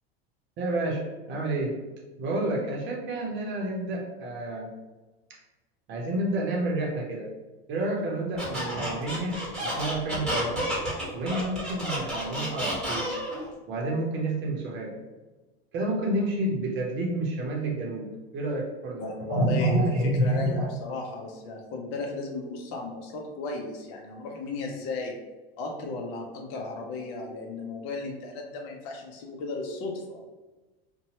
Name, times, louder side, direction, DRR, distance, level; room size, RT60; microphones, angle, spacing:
voice 1, 0.6-1.7 2.2-4.7 5.9-7.3 7.7-10.6 11.1-13.1 13.7-14.9 15.7-18.1 18.3-20.7, right 1 dB, 40° right, -2 dB, 0.7 m, -29 dB
Squeak, 8.4-13.4, equal, ahead, 1.4 m, -31 dB
voice 2, 19.0-25.2 25.6-30.2, left 3 dB, 45° left, 1 dB, 0.6 m, -35 dB
2.7 x 2.2 x 2.9 m, 1.2 s
hypercardioid pair, 105°, 31 cm